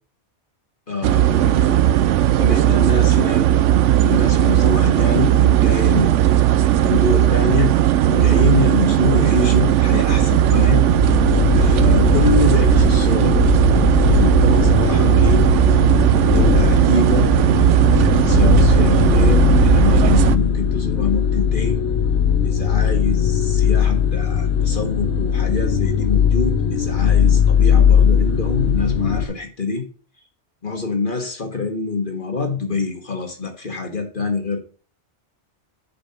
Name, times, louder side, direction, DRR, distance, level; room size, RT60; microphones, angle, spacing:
voice 1, 0.9-1.8 2.4-3.5 4.0-6.2 6.8-7.7 8.1-10.8 11.6-13.5 14.0-15.5 16.3-17.3 17.9-21.8 22.4-29.8 30.6-34.6, left 3 dB, 45° left, 4 dB, 1.6 m, -25 dB
sound 1, 1.0-20.4, right 12 dB, 85° right, 0.9 m, -16 dB
sound 2, 10.1-29.3, left 8 dB, 80° left, 1.3 m, -19 dB
6.8 x 5.2 x 5.7 m, 0.39 s
omnidirectional pair, 1.2 m